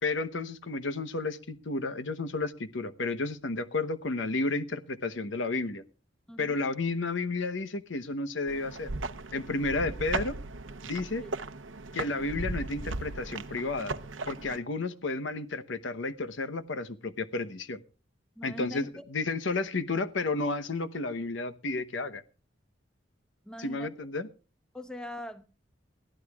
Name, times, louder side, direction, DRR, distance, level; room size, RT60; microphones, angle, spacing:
voice 1, 0.0-5.8 6.4-8.9 9.3-10.4 10.9-11.2 11.9-13.9 14.3-17.8 18.4-22.2 23.6-24.3, left 3 dB, 75° left, 0.9 m, -32 dB
voice 2, 6.3-6.6 11.2-11.3 18.4-19.0 23.4-23.9 24.7-25.4, equal, 5° left, 1.1 m, -41 dB
sound 1, 8.5-14.6, right 3 dB, 80° right, 0.8 m, -37 dB
21.5 x 14.0 x 2.4 m
head